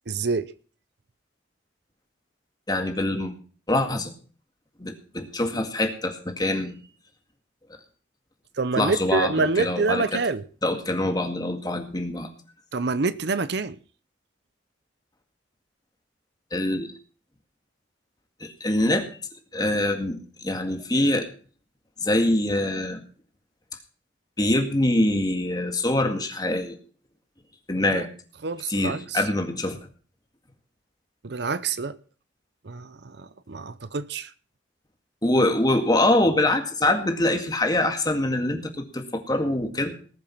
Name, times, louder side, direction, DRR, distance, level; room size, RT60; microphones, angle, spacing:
voice 1, 0.1-0.5 8.6-10.4 12.7-13.8 27.8-28.1 28.4-29.2 31.2-31.9 32.6-34.3, right 4 dB, 60° right, 0.7 m, -27 dB
voice 2, 2.7-3.3 3.7-4.1 4.8-6.8 8.8-10.2 10.6-12.3 16.5-16.9 18.4-19.0 19.5-21.3 22.0-23.0 24.4-26.8 27.7-28.1 28.7-29.8 35.2-39.9, left 1 dB, 20° left, 2.0 m, -24 dB
19.5 x 7.3 x 5.8 m
head